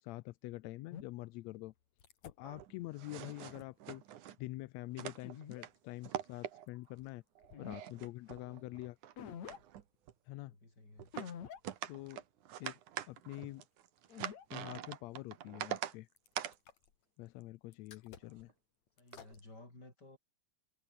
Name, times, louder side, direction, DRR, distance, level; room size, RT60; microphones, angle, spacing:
voice 1, 0.0-1.7 2.2-4.0 4.4-7.2 7.6-9.0 10.3-10.5 11.9-12.2 12.6-12.8 13.1-13.6 14.5-16.1 17.2-18.5, left 18 dB, 75° left, 1.6 m, -46 dB
sound 1, 0.9-1.1 2.0-2.3 3.2-3.6 5.2-5.7 7.0-7.1 7.4-7.8 8.3-8.4 9.2-9.6 11.1-11.6 12.1-12.2 14.1-14.5 16.2-16.9 17.7-18.5 19.0-19.4, left 8 dB, 60° left, 3.4 m, -48 dB
sound 2, 2.4-4.4 4.9-5.7 6.0-6.9 7.4-9.1 9.4-10.1 11.0-11.3 11.6-15.9 16.4-16.6 18.3-18.5 19.1-19.4, right 11 dB, 75° right, 2.9 m, -44 dB
voice 2, 10.4-11.1 19.0-20.2, left 2 dB, 30° left, 8.2 m, -56 dB
omnidirectional pair, 3.7 m